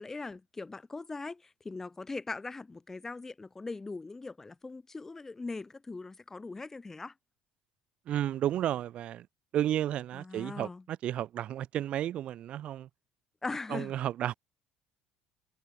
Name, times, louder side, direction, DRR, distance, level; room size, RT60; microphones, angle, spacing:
voice 1, 0.0-7.1 10.1-10.8 13.4-13.9, left 3 dB, 15° left, 1.8 m, -40 dB
voice 2, 8.1-9.3 9.5-12.9 13.7-14.3, right 12 dB, 55° right, 3.4 m, -32 dB
cardioid pair, 105°, 2 cm